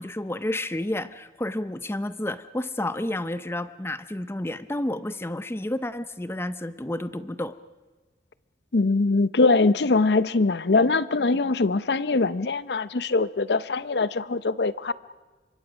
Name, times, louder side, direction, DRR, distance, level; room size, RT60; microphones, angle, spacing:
voice 1, 0.0-7.6, left 1 dB, 15° left, 14 dB, 0.6 m, -30 dB
voice 2, 8.7-14.9, left 3 dB, 65° left, 17 dB, 0.7 m, -22 dB
26.0 x 23.5 x 6.2 m, 1.3 s
head